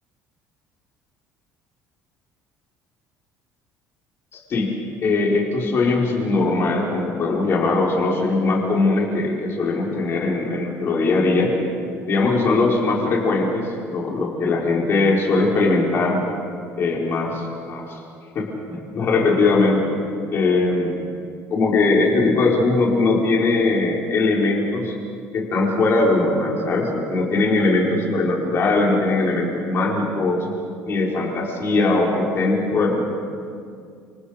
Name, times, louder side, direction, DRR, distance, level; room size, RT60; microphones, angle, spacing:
voice 1, 4.3-4.7 5.0-11.6 12.0-16.2 16.8-17.8 18.3-19.8 20.3-21.1 21.5-24.9 25.3-30.5 30.8-33.0, left 3 dB, 40° left, -2 dB, 4.6 m, -20 dB
28.5 x 26.0 x 5.1 m, 2.3 s
cardioid pair, 130°, 6 cm